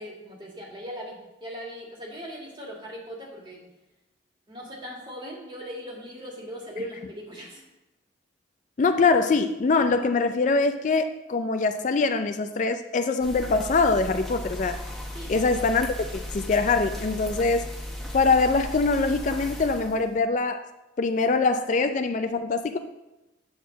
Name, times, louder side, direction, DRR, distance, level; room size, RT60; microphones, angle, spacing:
voice 1, 0.0-3.6 4.5-7.6 15.1-15.3, equal, 25° right, -2 dB, 1.9 m, -39 dB
voice 2, 8.8-14.8 15.3-15.9 16.1-17.6 18.1-20.7 21.0-22.8, left 4 dB, 40° left, 8 dB, 0.3 m, -23 dB
sound 1, 13.2-20.2, left 1 dB, ahead, 1.1 m, -36 dB
8.5 x 4.1 x 7.2 m, 1.0 s
head